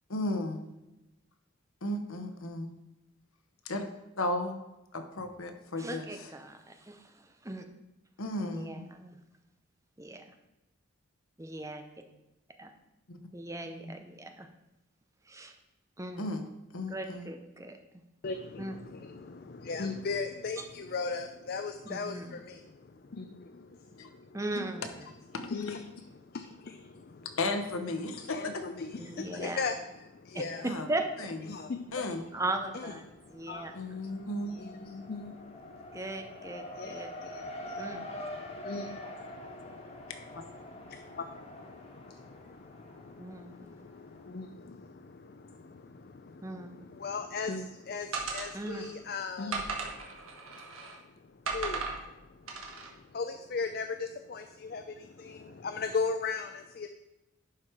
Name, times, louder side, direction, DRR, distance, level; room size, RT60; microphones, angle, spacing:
voice 1, 0.1-0.7 1.8-2.7 3.6-3.8 4.2-4.6 4.9-6.3 8.2-8.9 13.1-13.2 13.6-13.9 16.2-16.4 16.7-17.3 24.0-24.1 27.4-28.6 30.6-30.9 31.2-31.4 31.9-32.2 33.7-34.6 40.3-40.4, left 1 dB, 85° left, 6 dB, 1.1 m, -34 dB
voice 2, 5.8-7.6 8.4-9.2 10.0-10.3 11.4-11.8 12.6-12.7 13.3-14.5 15.3-15.5 16.0-16.2 16.9-17.8 18.6-18.8 20.6-20.7 21.9-22.4 24.3-24.9 27.8-27.9 29.0-29.7 30.3-31.3 32.3-33.0 33.3-34.0 35.9-37.1 37.8-38.0 43.2-43.8 46.4-46.9 48.5-48.9, right 2 dB, 15° right, 6 dB, 0.6 m, -38 dB
voice 3, 18.2-24.4 25.0-25.1 25.5-25.8 26.2-27.3 28.3-30.6 31.5-32.2 32.7-34.2 34.4-36.0 36.6-56.9, left 4 dB, 45° left, 8 dB, 0.4 m, -39 dB
Race car auto racing, 31.9-32.6 32.9-44.3, left 1 dB, 30° left, 1.0 m, -46 dB
sound 1, 48.1-48.9 49.5-51.0 51.5-52.0 52.5-52.9, right 4 dB, 75° right, 1.5 m, -36 dB
11.0 x 4.7 x 4.9 m, 0.96 s
head